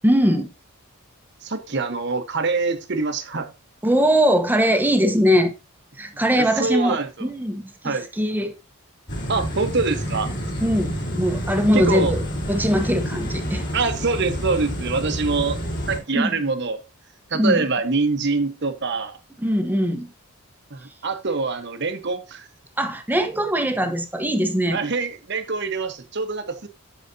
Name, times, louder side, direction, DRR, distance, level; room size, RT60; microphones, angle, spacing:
voice 1, 0.0-0.5 3.8-5.5 6.0-8.5 10.6-12.2 12.5-13.6 16.1-16.3 17.3-17.6 19.4-20.1 22.8-24.8, equal, 10° right, 0.9 m, -21 dB
voice 2, 1.4-3.5 6.4-7.3 7.8-8.1 9.3-10.3 11.7-12.1 13.7-15.6 15.9-16.8 17.3-19.2 20.7-22.5 24.7-26.7, right 4 dB, 55° right, 1.1 m, -25 dB
sound 1, 9.1-16.0, equal, 55° left, 3.9 m, -28 dB
13.5 x 5.0 x 2.7 m
head